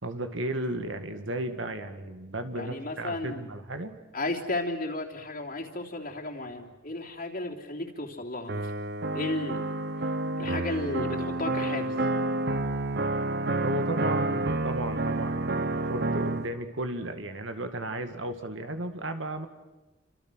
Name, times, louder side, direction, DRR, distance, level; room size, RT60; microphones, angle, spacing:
voice 1, 0.0-3.9 13.6-19.5, right 1 dB, 85° right, 7 dB, 2.1 m, -34 dB
voice 2, 2.5-3.4 4.1-8.7 9.1-9.7 10.4-12.0, left 2 dB, 50° left, -1 dB, 3.2 m, -34 dB
sound 1, 8.5-16.5, right 2 dB, 60° right, 1.1 m, -29 dB
29.5 x 25.5 x 6.4 m, 1.1 s
head